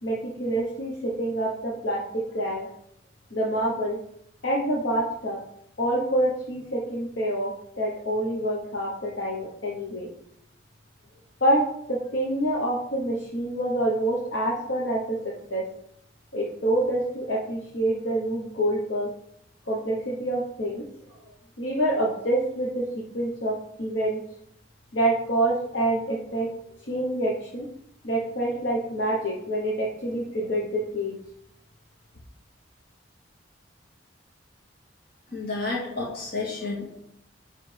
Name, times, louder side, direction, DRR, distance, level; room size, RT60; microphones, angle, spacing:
voice 1, 0.0-2.7 3.3-4.0 4.4-5.4 5.8-10.1 11.4-15.7 16.3-19.1 19.7-20.9 21.6-24.2 24.9-26.5 26.8-27.7 28.0-31.2, right 1 dB, 80° left, -3 dB, 1.0 m, -27 dB
voice 2, 35.3-37.0, left 3 dB, 55° left, -3 dB, 2.0 m, -31 dB
9.2 x 3.3 x 3.4 m, 0.73 s
head